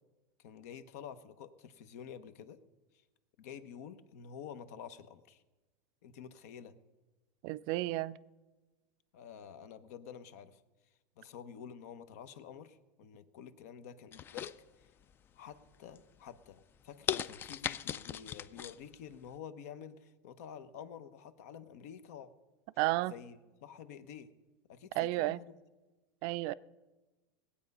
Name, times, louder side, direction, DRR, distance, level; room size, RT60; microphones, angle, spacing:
voice 1, 0.4-2.6 3.4-5.4 6.0-6.7 9.1-10.6 11.2-14.5 14.8-14.9 15.3-22.3 23.1-24.3 24.7-25.6, left 8 dB, 70° left, 0.9 m, -49 dB
voice 2, 7.4-8.2 22.8-23.1 25.0-25.4 26.2-26.5, right 18 dB, 55° right, 0.4 m, -32 dB
sound 1, 14.1-15.1 15.6-16.0 16.5-16.6 17.1-18.8 19.1-19.2, left 9 dB, 25° left, 0.3 m, -38 dB
18.5 x 8.4 x 5.4 m
supercardioid pair, 140°, 8 cm